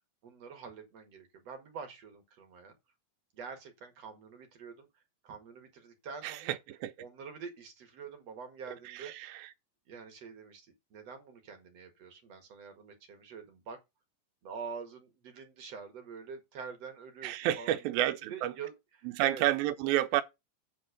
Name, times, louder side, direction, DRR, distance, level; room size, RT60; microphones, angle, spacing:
voice 1, 0.2-2.7 3.3-4.9 5.2-6.5 7.0-9.4 9.9-13.8 14.4-19.4, right 5 dB, 50° right, 2.4 m, -46 dB
voice 2, 6.2-6.6 6.8-6.9 8.9-9.5 17.2-18.5 19.2-20.2, right 14 dB, 90° right, 2.5 m, -30 dB
8.3 x 4.3 x 6.5 m
omnidirectional pair, 4.1 m